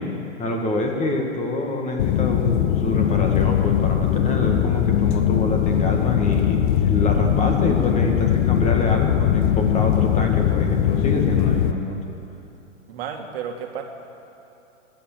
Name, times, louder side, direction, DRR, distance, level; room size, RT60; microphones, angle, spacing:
voice 1, 0.0-12.0, left 1 dB, 20° left, 2 dB, 1.8 m, -26 dB
sound 1, 2.0-11.7, left 10 dB, 40° left, 0.8 m, -20 dB
voice 2, 12.9-13.8, right 8 dB, 50° right, 3 dB, 2.0 m, -32 dB
21.0 x 8.7 x 7.4 m, 2.8 s
hypercardioid pair, 125°, 38 cm